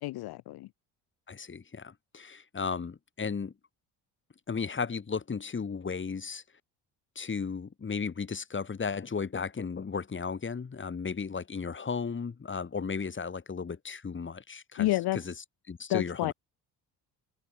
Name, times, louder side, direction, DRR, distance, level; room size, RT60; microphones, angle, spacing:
voice 1, 0.0-0.7 14.8-15.2 15.9-16.3, left 17 dB, 75° left, 1.2 m, -29 dB
voice 2, 1.3-3.5 4.5-6.4 7.1-14.9 15.2-15.3 15.7-16.3, left 5 dB, 30° left, 4.7 m, -35 dB
cardioid pair, 100°, 39 cm